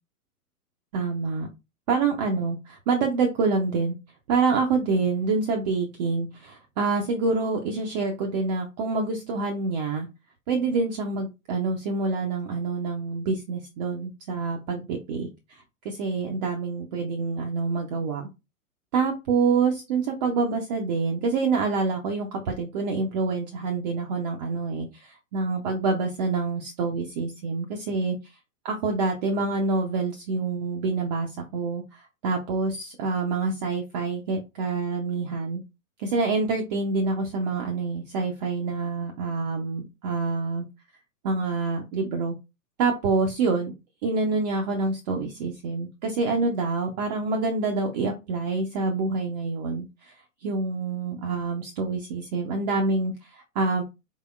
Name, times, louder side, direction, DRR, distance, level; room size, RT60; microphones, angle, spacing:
voice 1, 0.9-1.5 1.9-4.0 4.3-10.1 10.5-18.3 18.9-28.2 28.6-35.6 36.0-40.7 41.2-42.3 42.8-43.7 44.0-50.1 50.4-53.8, right 4 dB, 30° right, 2 dB, 0.4 m, -27 dB
3.6 x 3.4 x 2.3 m, 0.26 s
hypercardioid pair, 130°, 46 cm